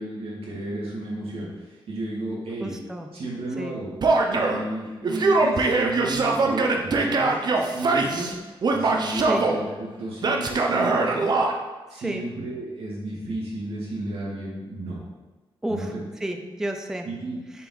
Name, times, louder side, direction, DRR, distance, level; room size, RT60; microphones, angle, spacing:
voice 1, 0.0-2.8 3.1-4.0 4.3-8.3 8.7-11.3 11.9-15.0 15.7-16.0 17.0-17.4, right 1 dB, 90° right, -5 dB, 2.2 m, -33 dB
voice 2, 2.6-3.1 3.6-3.7 9.3-9.4 12.0-12.2 15.6-15.9 16.2-17.1, right 1 dB, 5° right, 5 dB, 0.4 m, -30 dB
Male speech man speaking / Yell, 4.0-4.6 5.0-8.3 8.6-9.6 10.2-11.5, right 3 dB, 45° right, 0.6 m, -22 dB
6.8 x 4.7 x 4.0 m, 1.3 s
wide cardioid pair, 175°, 10 cm